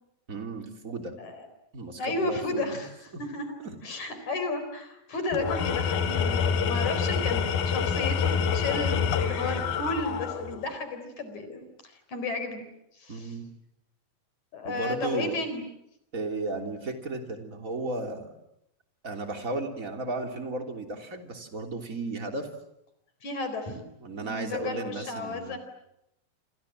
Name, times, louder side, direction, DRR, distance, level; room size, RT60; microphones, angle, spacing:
voice 1, 0.3-1.2 1.7-2.8 3.6-3.8 13.1-13.4 14.6-15.4 16.1-18.3 19.0-22.5 24.0-25.6, right 2 dB, 25° right, 4 dB, 3.4 m, -34 dB
voice 2, 2.0-2.9 3.2-3.5 3.8-11.7 12.1-12.7 13.0-13.3 14.5-15.6 23.2-23.8 24.2-25.6, left 2 dB, 55° left, 8 dB, 5.4 m, -33 dB
Tools, 5.3-10.7, left 7 dB, 90° left, 3.5 m, -27 dB
29.0 x 27.5 x 7.5 m, 0.80 s
omnidirectional pair, 4.0 m